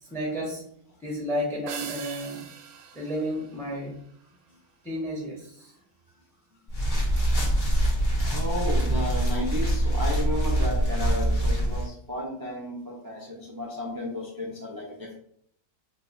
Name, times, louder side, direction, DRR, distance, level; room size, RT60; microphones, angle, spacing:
voice 1, 0.1-0.6 1.0-2.5 2.9-4.0 4.8-5.7, equal, ahead, -2 dB, 0.7 m, -32 dB
sound 1, 1.7-4.3, right 7 dB, 75° right, 0.9 m, -42 dB
sound 2, 6.7-11.9, right 1 dB, 40° left, 1.1 m, -24 dB
voice 2, 8.2-15.1, left 1 dB, 30° right, -3 dB, 0.3 m, -33 dB
4.4 x 2.8 x 2.6 m, 0.69 s
omnidirectional pair, 1.4 m